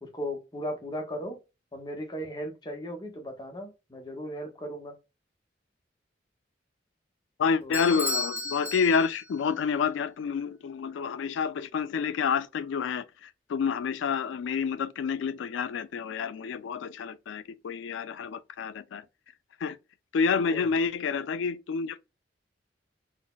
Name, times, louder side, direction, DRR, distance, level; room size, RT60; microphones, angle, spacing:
voice 1, 0.0-1.4 1.7-4.9 7.6-7.8 20.5-20.6, equal, 25° left, 0.6 m, -37 dB
voice 2, 7.4-19.0 19.6-19.8 20.1-22.0, left 5 dB, 90° left, 0.3 m, -29 dB
Bell / Doorbell, 7.7-9.4, left 2 dB, 15° right, 0.9 m, -33 dB
3.8 x 2.0 x 2.2 m
head